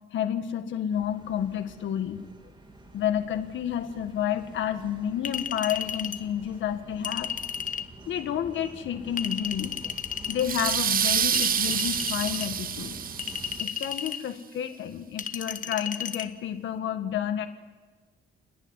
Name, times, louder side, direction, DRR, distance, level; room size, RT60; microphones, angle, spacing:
voice 1, 0.1-2.2 2.9-7.3 8.1-9.9 10.3-13.0 13.6-17.5, left 9 dB, 70° left, 7 dB, 1.8 m, -30 dB
sound 1, 0.9-13.6, right 2 dB, 25° right, 3.0 m, -47 dB
Chink clink, 5.2-6.2 7.0-7.9 9.2-10.4 11.3-12.5 13.2-14.2 15.2-16.3, left 7 dB, 40° left, 1.2 m, -34 dB
sound 2, 10.4-13.9, right 8 dB, 45° right, 0.8 m, -27 dB
29.0 x 10.5 x 9.8 m, 1.4 s
cardioid pair, 90°, 20 cm